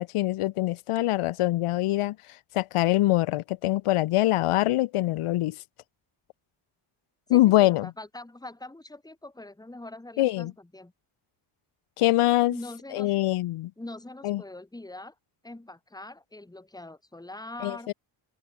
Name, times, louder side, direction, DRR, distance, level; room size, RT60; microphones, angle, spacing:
voice 1, 0.0-2.2 2.5-5.6 7.3-7.9 10.2-10.5 12.0-12.5 12.9-13.7 14.2-14.4 17.6-17.9, left 16 dB, 85° left, 0.8 m, -24 dB
voice 2, 7.3-10.9 12.5-13.1 13.8-15.1 15.4-17.9, left 2 dB, 10° left, 1.5 m, -42 dB
open air
cardioid pair, 85°, 49 cm